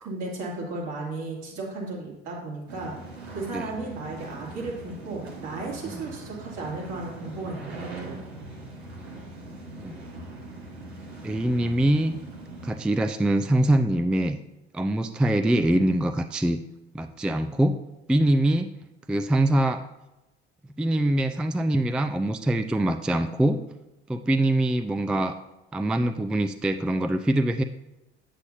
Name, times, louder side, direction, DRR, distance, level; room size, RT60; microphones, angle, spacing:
voice 1, 0.0-2.9 3.3-8.2, right 3 dB, 60° right, -3 dB, 2.7 m, -35 dB
sound 1, 2.7-12.7, right 2 dB, 85° right, 1.3 m, -41 dB
voice 2, 11.2-12.1 12.6-14.4 14.7-16.6 16.9-17.8 18.1-18.7 19.1-19.9 20.8-23.6 24.1-25.4 25.7-27.6, right 1 dB, 5° right, 9 dB, 0.3 m, -23 dB
8.2 x 8.2 x 2.7 m, 0.98 s
figure-of-eight pair, 60°, 31 cm